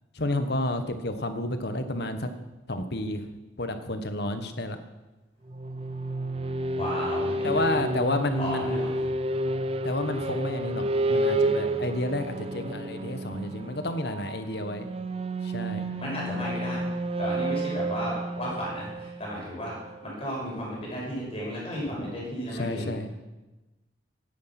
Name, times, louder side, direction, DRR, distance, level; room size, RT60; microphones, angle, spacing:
voice 1, 0.1-2.3 2.7-3.3 3.6-4.8 7.4-8.8 9.8-10.8 11.1-14.9 15.4-15.9 22.5-23.1, left 1 dB, 60° left, 8 dB, 1.4 m, -30 dB
sound 1, 5.5-20.1, right 1 dB, 30° right, 0.6 m, -30 dB
voice 2, 6.7-7.9 8.4-8.9 16.0-16.8 17.2-19.8 20.0-22.9, equal, 30° left, -4 dB, 5.7 m, -34 dB
16.5 x 10.0 x 6.0 m, 1.1 s
head